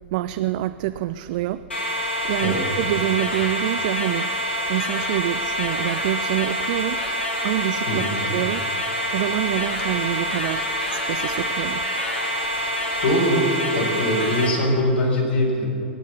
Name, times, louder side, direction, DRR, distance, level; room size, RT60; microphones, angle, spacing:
voice 1, 0.1-1.6 2.2-4.3 4.7-7.0 7.4-8.6 9.1-10.6 10.9-11.9, right 14 dB, 45° right, 12 dB, 0.4 m, -26 dB
sound 1, 1.7-14.5, equal, 75° left, 3.0 m, -26 dB
voice 2, 7.9-8.2 13.0-13.5 13.7-15.7, equal, 60° left, -3 dB, 4.0 m, -22 dB
23.0 x 9.0 x 7.0 m, 2.7 s
figure-of-eight pair, 100°, 6 cm